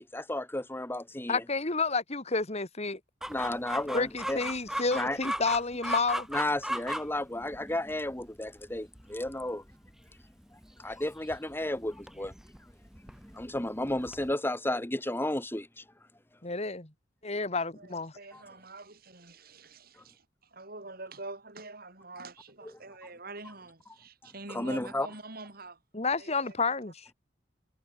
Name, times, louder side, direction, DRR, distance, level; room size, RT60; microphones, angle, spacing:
voice 1, 0.0-1.4 3.3-4.4 4.9-5.2 6.3-9.6 10.8-12.3 13.3-15.8 18.3-18.4 24.5-25.1, left 1 dB, 15° left, 1.6 m, -33 dB
voice 2, 1.3-3.0 3.9-6.3 16.4-16.9 17.2-18.1 25.9-26.9, left 4 dB, 35° left, 2.8 m, -30 dB
Chicken rooster, 3.2-14.3, right 1 dB, 5° right, 2.2 m, -39 dB
voice 3, 17.5-25.8 26.2-26.8, right 3 dB, 55° right, 7.9 m, -46 dB
head